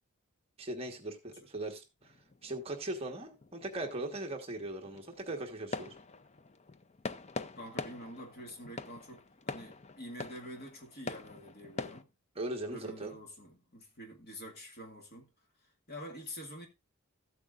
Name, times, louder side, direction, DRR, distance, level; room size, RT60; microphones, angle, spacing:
voice 1, 0.6-2.1 2.4-6.0 12.3-13.2, right 2 dB, 25° right, 1.3 m, -39 dB
sound 1, 2.0-12.0, left 3 dB, 30° left, 0.5 m, -44 dB
voice 2, 7.6-12.1 12.7-15.3 15.9-16.7, equal, 45° left, 1.8 m, -47 dB
14.0 x 8.3 x 2.5 m
head